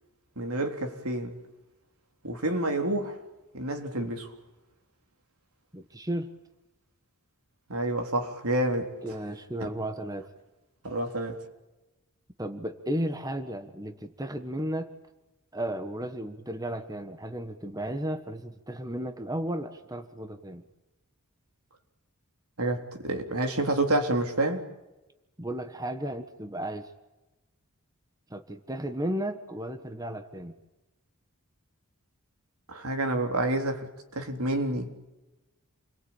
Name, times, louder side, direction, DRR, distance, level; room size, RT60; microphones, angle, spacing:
voice 1, 0.4-1.4 2.2-3.2 3.5-4.3 7.7-8.9 10.8-11.3 22.6-24.6 32.7-33.9 34.1-34.9, right 1 dB, 80° right, 3.7 m, -28 dB
voice 2, 5.7-6.3 9.0-10.3 12.4-14.9 15.5-20.6 25.4-26.9 28.3-30.5, right 1 dB, 15° right, 1.4 m, -34 dB
29.0 x 22.5 x 8.8 m
head